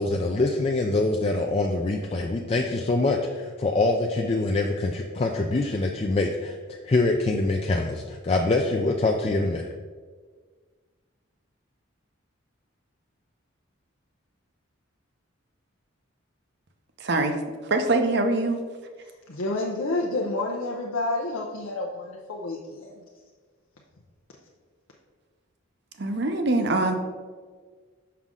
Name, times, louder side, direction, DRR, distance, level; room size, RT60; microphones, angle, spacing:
voice 1, 0.0-9.7, left 2 dB, 30° left, 0.3 m, -24 dB
voice 2, 17.0-18.6 26.0-26.9, right 2 dB, 55° right, 0.7 m, -24 dB
voice 3, 19.3-23.0, left 2 dB, 85° left, 0.7 m, -29 dB
6.0 x 5.6 x 3.7 m
head